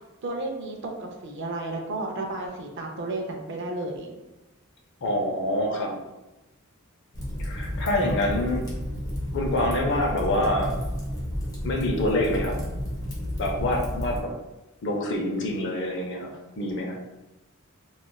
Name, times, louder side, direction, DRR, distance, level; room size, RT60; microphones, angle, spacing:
voice 1, 0.2-4.2, right 2 dB, 55° right, 2 dB, 0.5 m, -32 dB
voice 2, 5.0-5.9 7.4-8.7 9.3-10.8 11.6-12.6 13.4-14.3 14.8-16.3 16.6-17.0, left 1 dB, 60° left, 1 dB, 0.5 m, -26 dB
Fire, 7.1-14.2, equal, 15° left, 0.6 m, -31 dB
3.0 x 2.3 x 2.2 m, 1.0 s
head